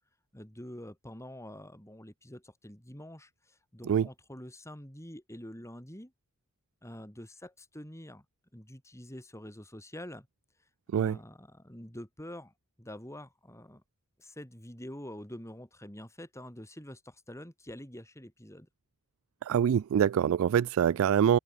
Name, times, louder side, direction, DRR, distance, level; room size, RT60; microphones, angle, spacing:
voice 1, 0.3-6.1 6.8-8.3 8.5-10.3 10.9-13.8 14.2-18.7, left 1 dB, 15° left, 5.2 m, -46 dB
voice 2, 19.4-21.4, right 8 dB, 65° right, 0.3 m, -25 dB
head